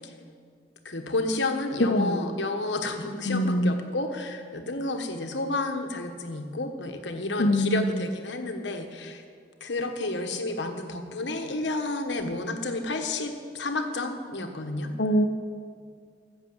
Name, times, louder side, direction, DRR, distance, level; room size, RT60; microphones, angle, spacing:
voice 1, 0.8-9.2 9.6-14.9, left 2 dB, 80° left, 5 dB, 1.3 m, -31 dB
voice 2, 1.8-2.3 3.3-3.7 7.4-8.0 15.0-15.3, equal, 60° left, 0 dB, 0.9 m, -23 dB
14.5 x 6.7 x 7.9 m, 2.1 s
head